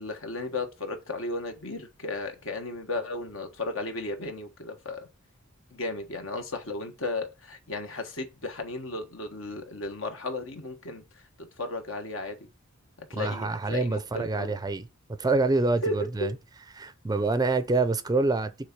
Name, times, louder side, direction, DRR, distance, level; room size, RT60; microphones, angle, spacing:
voice 1, 0.0-5.1 5.7-11.0 11.6-12.4 13.1-14.5 15.8-16.3, left 2 dB, 70° left, 1.4 m, -34 dB
voice 2, 13.1-14.9 15.2-16.3 16.8-18.5, right 3 dB, 20° right, 0.5 m, -26 dB
6.4 x 3.5 x 6.0 m
head